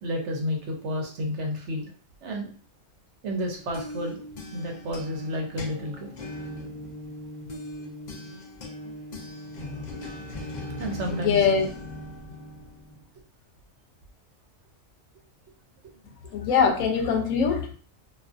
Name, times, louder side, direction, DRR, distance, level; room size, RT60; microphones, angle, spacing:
voice 1, 0.0-1.9 2.2-2.5 3.2-4.2 4.5-6.1 10.8-11.5 15.8-15.9, equal, 65° right, 2 dB, 0.8 m, -31 dB
sound 1, 3.4-13.1, left 1 dB, 60° left, 0.4 m, -39 dB
voice 2, 11.1-11.7 16.3-17.8, left 6 dB, 80° left, 2 dB, 1.0 m, -22 dB
2.5 x 2.3 x 2.3 m, 0.41 s
omnidirectional pair, 1.4 m